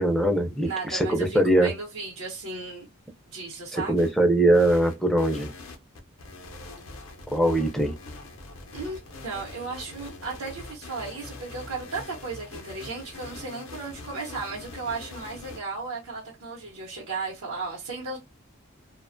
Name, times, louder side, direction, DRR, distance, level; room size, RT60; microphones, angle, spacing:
voice 1, 0.0-1.7 3.7-5.5 7.3-8.0, right 1 dB, ahead, 0.3 m, -22 dB
voice 2, 0.6-2.9 3.3-4.1 8.7-18.2, right 3 dB, 75° right, 0.8 m, -35 dB
sound 1, 4.0-4.1 4.5-15.6, left 2 dB, 70° left, 0.5 m, -43 dB
2.4 x 2.1 x 2.5 m
head